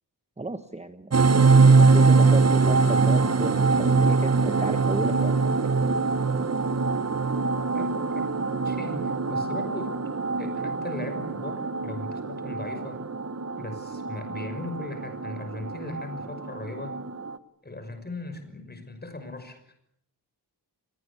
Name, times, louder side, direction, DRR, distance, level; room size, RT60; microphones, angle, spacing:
voice 1, 0.4-1.2 1.6-5.7, right 2 dB, 15° right, 9 dB, 1.2 m, -34 dB
sound 1, 1.1-17.4, right 4 dB, 35° right, 1.2 m, -23 dB
voice 2, 7.7-8.2 8.6-9.9 10.4-13.0 13.5-17.0 17.6-19.7, left 2 dB, 25° left, 8 dB, 6.0 m, -38 dB
28.5 x 20.5 x 8.5 m, 0.74 s
wide cardioid pair, 120°, 41 cm